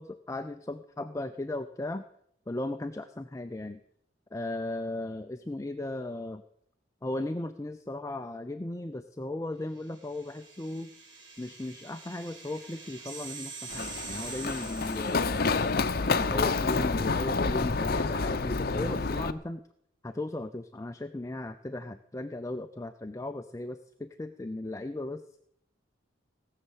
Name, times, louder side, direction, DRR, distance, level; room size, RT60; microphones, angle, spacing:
voice 1, 0.0-2.0 2.5-3.8 4.3-6.4 7.0-10.9 11.4-15.4 16.1-19.6 20.0-25.2, left 2 dB, 15° left, 8 dB, 0.5 m, -36 dB
sound 1, 9.9-15.9, right 5 dB, 65° right, 6.0 m, -45 dB
Run, 13.7-19.3, left 4 dB, 50° left, 0.7 m, -28 dB
17.5 x 6.7 x 8.0 m, 0.72 s
head